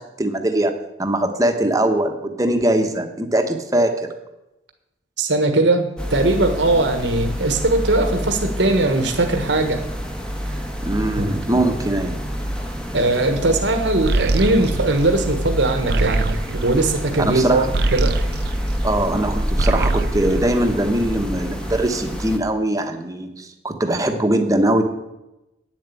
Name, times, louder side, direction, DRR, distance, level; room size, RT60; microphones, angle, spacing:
voice 1, 0.0-4.1 10.8-12.2 17.2-17.7 18.8-24.8, right 1 dB, 20° right, 5 dB, 1.2 m, -21 dB
voice 2, 5.2-9.8 10.5-10.6 11.2-11.3 12.9-17.6 17.9-18.2, right 2 dB, 80° right, 5 dB, 1.4 m, -20 dB
sound 1, 6.0-22.4, equal, 5° left, 1.2 m, -28 dB
sound 2, 14.1-19.2 19.5-21.3, right 3 dB, 60° right, 0.7 m, -24 dB
9.3 x 7.4 x 8.4 m, 0.93 s
head